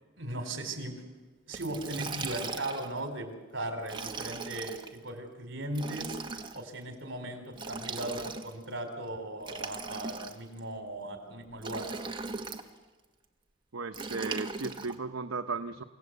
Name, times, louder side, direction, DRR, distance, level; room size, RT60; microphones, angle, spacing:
voice 1, 0.2-0.9 1.5-11.9, right 1 dB, 60° right, 6 dB, 4.3 m, -38 dB
Liquid, 1.5-3.0 3.8-4.9 5.7-6.6 7.5-8.6 9.4-10.6 11.6-12.7 13.9-14.9, right 4 dB, 25° right, 1.5 m, -39 dB
voice 2, 13.7-15.8, right 4 dB, 75° right, 7 dB, 0.9 m, -36 dB
29.0 x 17.5 x 8.1 m, 1.3 s
head